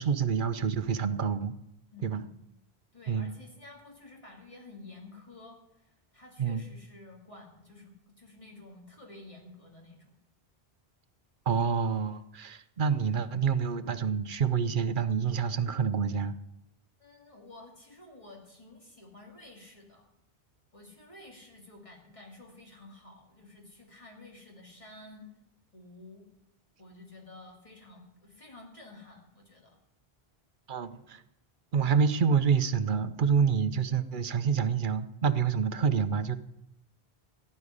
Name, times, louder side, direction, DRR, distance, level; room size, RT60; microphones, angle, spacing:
voice 1, 0.0-1.5 2.0-2.2 3.1-3.3 6.4-6.6 11.5-16.4 30.7-31.2 31.7-36.4, right 6 dB, 55° right, 12 dB, 0.9 m, -27 dB
voice 2, 1.9-2.3 2.9-10.1 17.0-20.1 20.7-25.3 25.7-26.3 26.8-29.8, left 2 dB, 30° left, -1 dB, 2.7 m, -51 dB
16.5 x 5.5 x 9.8 m, 0.85 s
omnidirectional pair, 1.0 m